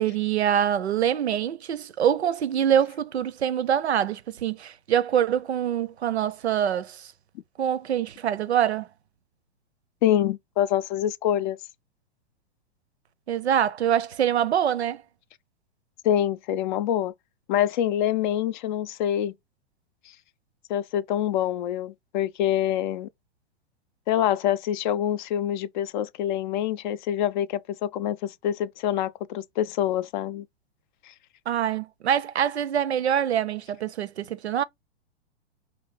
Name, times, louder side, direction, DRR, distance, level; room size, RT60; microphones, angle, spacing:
voice 1, 0.0-7.1 7.6-8.9 13.3-15.0 31.5-34.6, right 9 dB, 90° right, 0.6 m, -25 dB
voice 2, 10.0-11.6 16.0-17.1 17.5-19.3 20.7-23.1 24.1-30.5, left 11 dB, 50° left, 0.5 m, -26 dB
4.7 x 2.6 x 3.2 m
hypercardioid pair, 115°, 32 cm